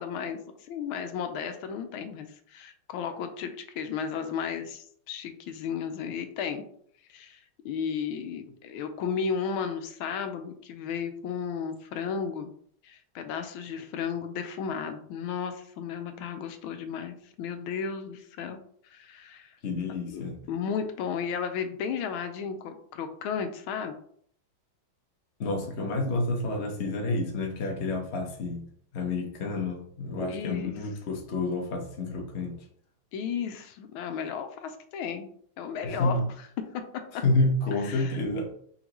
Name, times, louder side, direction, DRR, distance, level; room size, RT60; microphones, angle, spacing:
voice 1, 0.0-6.6 7.1-7.4 7.6-12.5 12.8-18.6 18.8-19.6 20.0-23.9 30.2-30.8 33.1-35.3 35.6-36.2 36.7-36.8 37.8-38.2, left 6 dB, 85° left, 7 dB, 1.4 m, -34 dB
voice 2, 19.6-20.3 25.4-28.7 28.9-32.6 35.8-36.2 37.2-38.5, left 2 dB, 45° left, 1 dB, 0.9 m, -29 dB
4.3 x 3.9 x 2.9 m, 0.63 s
omnidirectional pair, 2.2 m